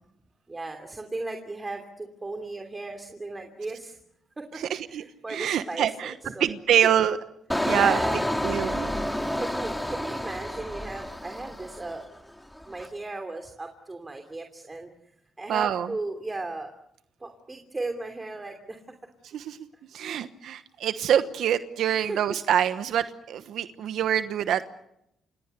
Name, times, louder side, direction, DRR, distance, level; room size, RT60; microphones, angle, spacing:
voice 1, 0.5-4.0 4.4-4.6 4.9-6.9 7.7-8.8 9.3-12.0 12.7-14.9 15.4-16.7 17.2-18.8 21.9-22.4 22.9-23.1, right 2 dB, 20° right, 5 dB, 3.0 m, -36 dB
voice 2, 4.5-5.0 5.3-6.1 6.4-7.2 7.6-8.0 8.4-8.9 15.5-15.9 19.3-19.6 19.9-24.6, right 10 dB, 75° right, 11 dB, 1.1 m, -25 dB
Engine, 7.5-12.2 12.5-12.9, left 1 dB, 5° left, 3.4 m, -29 dB
28.5 x 24.0 x 6.8 m, 0.79 s
cardioid pair, 90°, 0 cm